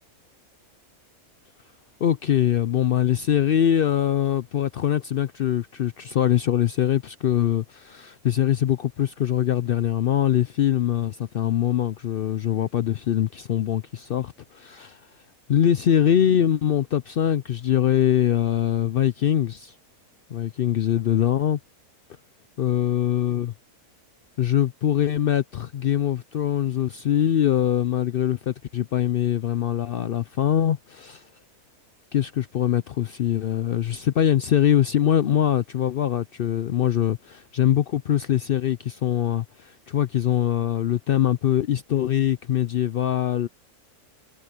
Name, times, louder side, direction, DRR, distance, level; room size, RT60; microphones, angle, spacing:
voice 1, 2.0-15.0 15.5-19.7 20.3-21.6 22.6-23.5 24.4-31.2 32.1-43.5, left 10 dB, 80° left, 0.5 m, -23 dB
omnidirectional pair, 1.6 m